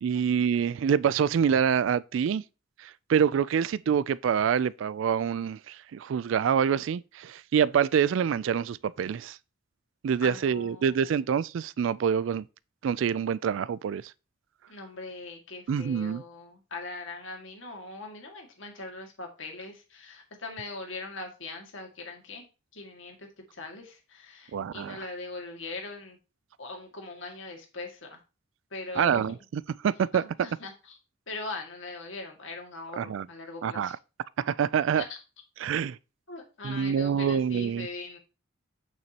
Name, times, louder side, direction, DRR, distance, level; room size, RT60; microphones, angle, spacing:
voice 1, 0.0-2.4 2.8-9.4 10.0-12.4 12.8-14.0 15.7-16.2 24.5-25.0 29.0-30.2 33.0-33.3 33.6-33.9 34.4-35.0 35.6-36.0 36.6-37.9, right 7 dB, 65° right, 0.3 m, -26 dB
voice 2, 10.2-11.3 14.7-26.2 26.6-28.2 28.7-29.3 30.1-31.0 31.3-34.0 34.9-35.1 36.3-38.2, left 3 dB, 65° left, 2.0 m, -41 dB
8.8 x 6.3 x 2.9 m
head